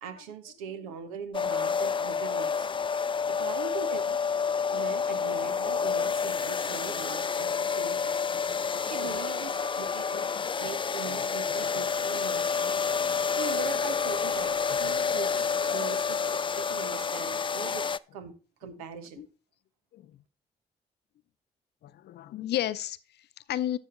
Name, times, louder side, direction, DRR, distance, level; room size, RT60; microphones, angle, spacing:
voice 1, 0.0-2.7 3.3-4.2 4.7-8.2 8.6-10.3 10.6-17.9 18.1-18.3 18.6-19.2, right 6 dB, 90° right, 1.1 m, -41 dB
sound 1, 1.3-18.0, left 6 dB, 30° left, 0.4 m, -29 dB
voice 2, 8.3-9.3 10.1-10.6 11.1-11.7 13.0-13.3 14.8-15.0 15.7-15.9 19.2-19.3 19.9-20.2 21.8-23.8, left 12 dB, 70° left, 0.7 m, -36 dB
12.0 x 7.4 x 3.8 m
hypercardioid pair, 45°, 18 cm